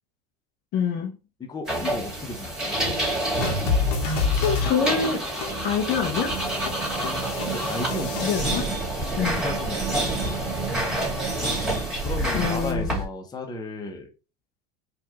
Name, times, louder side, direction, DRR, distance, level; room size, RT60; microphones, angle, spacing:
voice 1, 0.7-1.2 4.4-5.3 5.6-6.4 8.2-8.7 9.1-9.4 12.3-13.0, left 6 dB, 50° left, 0.8 m, -25 dB
voice 2, 1.4-2.8 7.0-8.7 9.0-10.4 12.0-14.1, left 3 dB, 20° left, 1.0 m, -35 dB
sound 1, 1.7-13.0, right 1 dB, 5° right, 2.0 m, -28 dB
sound 2, 3.4-8.4, left 4 dB, 85° left, 1.2 m, -28 dB
4.4 x 2.6 x 3.0 m
supercardioid pair, 115°, 20 cm